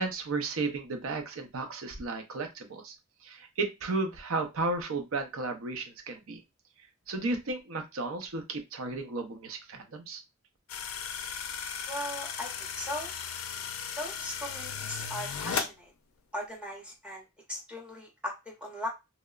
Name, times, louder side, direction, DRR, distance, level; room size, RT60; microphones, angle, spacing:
voice 1, 0.0-2.9 3.2-6.4 7.1-10.2, right 3 dB, 75° right, 5 dB, 0.6 m, -34 dB
sound 1, 10.7-15.7, left 7 dB, 80° left, 0.4 m, -36 dB
voice 2, 11.9-13.1 14.0-15.9 16.3-18.9, left 1 dB, 5° right, -2 dB, 0.6 m, -38 dB
2.9 x 2.0 x 2.3 m, 0.24 s
head